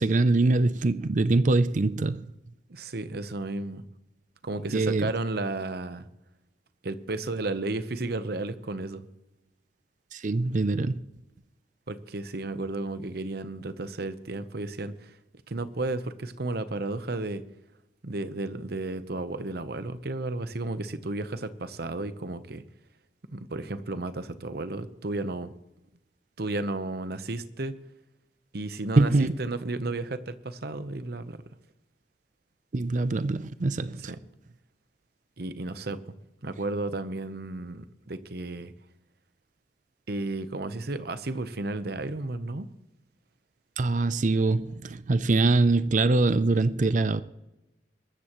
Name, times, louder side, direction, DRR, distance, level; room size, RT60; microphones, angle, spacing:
voice 1, 0.0-2.2 4.7-5.1 10.1-11.0 29.0-29.3 32.7-34.1 43.8-47.2, right 3 dB, 45° right, 0.5 m, -23 dB
voice 2, 2.7-3.8 4.4-6.1 6.8-9.1 11.9-15.1 15.5-17.4 18.0-22.6 23.3-25.5 26.4-27.7 28.5-31.4 34.1-34.2 35.4-36.0 36.4-38.7 40.1-42.7, right 2 dB, 60° right, 0.9 m, -33 dB
22.5 x 13.0 x 3.1 m
head